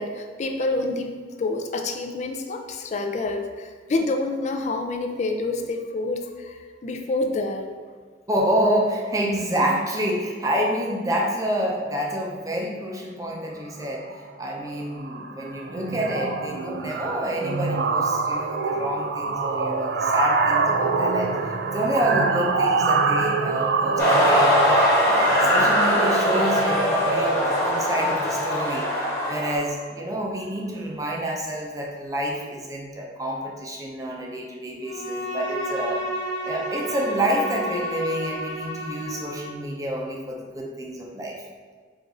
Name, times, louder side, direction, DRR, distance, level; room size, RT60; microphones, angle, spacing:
voice 1, 0.0-7.7 9.6-9.7, left 2 dB, 40° left, 5 dB, 0.3 m, -28 dB
voice 2, 8.3-21.3 21.7-24.7 25.0-28.9 29.3-36.0 36.4-41.4, equal, 20° right, -1 dB, 0.6 m, -28 dB
sound 1, 13.8-14.1 14.4-14.7 15.0-29.8, right 4 dB, 70° right, 0.3 m, -26 dB
sound 2, 24.0-29.6, equal, 15° left, 1.1 m, -21 dB
Bowed string instrument, 34.8-39.7, right 1 dB, 60° left, 1.1 m, -31 dB
4.8 x 2.5 x 3.9 m, 1.5 s
head